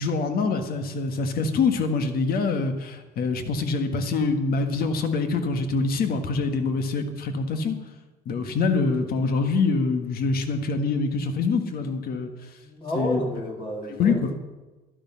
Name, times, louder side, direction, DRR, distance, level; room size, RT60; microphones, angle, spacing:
voice 1, 0.0-7.8 8.2-12.3 12.9-13.2 13.9-14.3, left 4 dB, 65° left, 8 dB, 1.6 m, -25 dB
voice 2, 12.6-14.3, equal, 30° left, -1 dB, 1.9 m, -31 dB
12.0 x 11.5 x 5.7 m, 1.2 s
cardioid pair, 110°, 17 cm